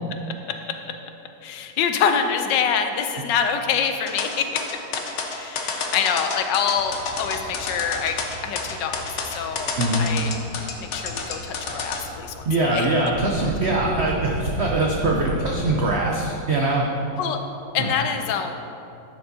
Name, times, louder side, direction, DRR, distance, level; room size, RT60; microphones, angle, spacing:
voice 1, 1.4-4.5 5.3-8.2 8.4-9.0 9.3-10.4 10.8-12.9 17.2-17.4 17.7-18.5, left 7 dB, 80° left, 6 dB, 1.2 m, -25 dB
sound 1, 4.1-12.0, left 4 dB, 60° left, 0.8 m, -29 dB
sound 2, 6.7-15.7, right 1 dB, 50° right, 2.2 m, -34 dB
voice 2, 12.5-16.9 17.8-17.9, right 2 dB, 75° right, -1 dB, 0.6 m, -22 dB
10.0 x 6.7 x 2.7 m, 2.8 s
omnidirectional pair, 1.9 m